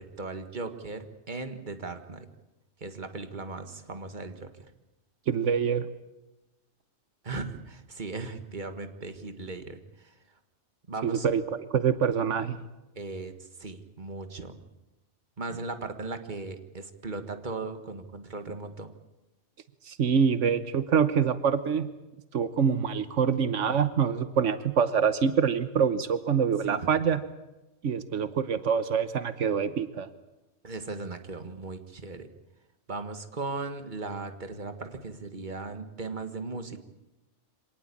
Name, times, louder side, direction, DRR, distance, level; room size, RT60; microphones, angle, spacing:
voice 1, 0.0-2.3 2.8-4.5 7.2-10.1 10.9-11.3 13.0-14.6 15.4-18.9 26.6-26.8 30.6-32.3 32.9-36.8, right 3 dB, 40° right, 8 dB, 1.9 m, -37 dB
voice 2, 5.3-5.9 11.0-12.6 19.9-21.9 22.3-27.2 27.8-30.1, right 7 dB, 85° right, 12 dB, 1.4 m, -25 dB
25.5 x 18.5 x 8.6 m, 1.0 s
omnidirectional pair, 1.2 m